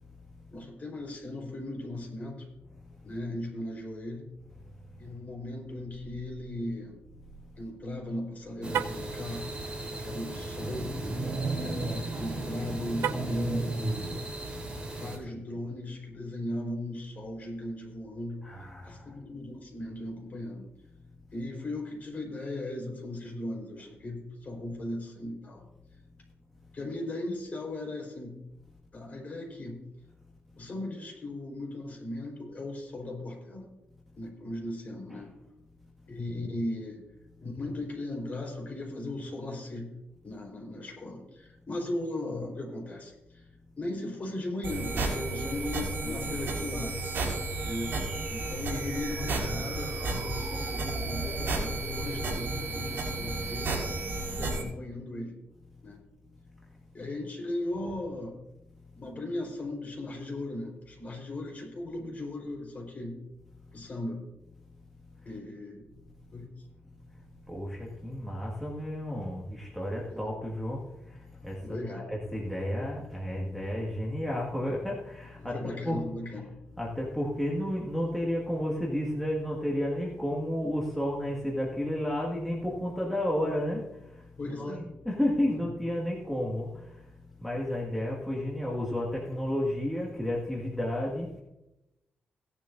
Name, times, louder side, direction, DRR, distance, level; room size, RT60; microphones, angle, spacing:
voice 1, 0.5-2.5 3.0-4.3 5.0-7.0 7.6-9.5 10.0-10.9 11.6-11.8 12.2-14.0 15.0-18.5 18.8-20.7 21.3-25.7 26.7-28.4 28.9-29.8 30.5-33.7 34.2-35.3 36.1-37.0 37.4-39.9 40.2-43.5 43.8-47.0 47.6-48.0 48.3-53.7 54.3-55.3 55.8-56.0 56.9-58.3 59.0-63.2 63.7-64.2 65.2-65.9 66.3-66.5 70.1-70.2 71.6-72.1 75.4-76.6 84.4-84.8, left 1 dB, 40° left, 0 dB, 4.3 m, -37 dB
sound 1, 8.6-15.2, right 2 dB, 25° right, 3.6 m, -34 dB
Car, 8.6-9.1 12.9-13.5, right 9 dB, 85° right, 0.5 m, -32 dB
voice 2, 18.4-19.1 35.1-35.2 57.7-57.9 67.5-76.1 76.8-87.1 87.4-91.4, left 1 dB, ahead, -4 dB, 2.0 m, -32 dB
sound 2, 44.6-54.6, right 2 dB, 65° right, 5.2 m, -32 dB
17.5 x 11.0 x 2.6 m, 0.94 s
wide cardioid pair, 125°, 4 cm